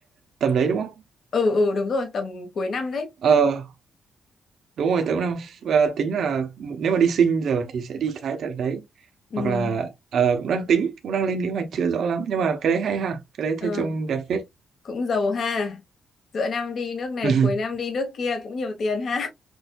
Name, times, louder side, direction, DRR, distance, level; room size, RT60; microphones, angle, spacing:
voice 1, 0.4-0.9 3.2-3.7 4.8-8.8 9.4-14.4 17.2-17.5, right 6 dB, 70° right, 0.8 m, -23 dB
voice 2, 1.3-3.1 9.3-9.8 13.6-13.9 14.8-15.8 16.3-19.3, left 3 dB, 55° left, 1.3 m, -26 dB
6.2 x 2.6 x 2.3 m
cardioid pair, 110°, 0 cm